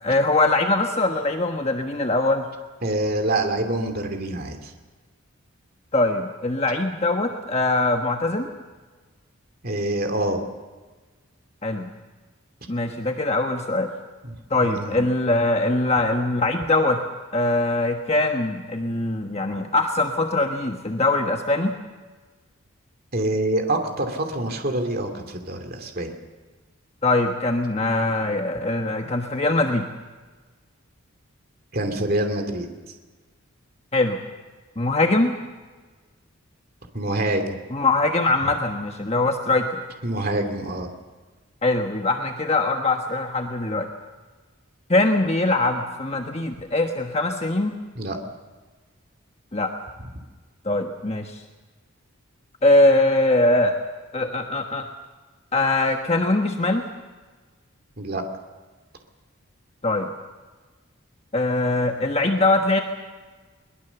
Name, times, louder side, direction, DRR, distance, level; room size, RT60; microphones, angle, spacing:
voice 1, 0.0-2.5 5.9-8.5 11.6-11.9 12.7-13.9 14.5-17.0 17.3-21.7 27.0-29.9 33.9-34.2 34.8-35.3 37.7-39.8 41.6-43.9 44.9-47.7 49.5-49.7 50.6-51.4 52.6-53.7 54.1-54.9 55.5-56.8 59.8-60.1 61.3-62.8, left 2 dB, 30° left, 4 dB, 1.3 m, -22 dB
voice 2, 2.8-4.7 9.6-10.4 14.6-15.0 23.1-26.1 31.7-32.7 36.9-37.6 40.0-40.9 48.0-48.2 58.0-58.2, right 1 dB, 45° right, 5 dB, 2.6 m, -26 dB
23.0 x 20.5 x 7.0 m, 1.3 s
head